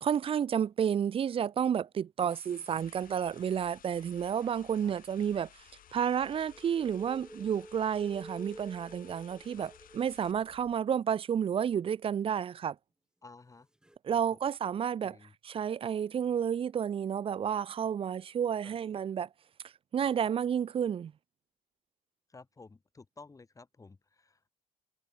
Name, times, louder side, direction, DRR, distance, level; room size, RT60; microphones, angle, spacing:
voice 1, 0.0-5.5 5.9-12.8 14.0-15.2 15.4-19.3 19.9-21.1, right 8 dB, 35° right, 0.4 m, -31 dB
voice 2, 2.2-2.8 4.8-5.0 9.6-9.7 13.2-13.7 14.1-14.4 15.0-15.3 18.6-18.8 22.3-24.5, left 3 dB, 20° left, 1.9 m, -54 dB
sound 1, 2.3-10.3, left 10 dB, 55° left, 4.2 m, -59 dB
sound 2, 2.8-10.7, left 17 dB, 80° left, 3.6 m, -64 dB
sound 3, 5.8-10.6 13.8-14.0, right 1 dB, 5° right, 1.3 m, -51 dB
cardioid pair, 110°, 17 cm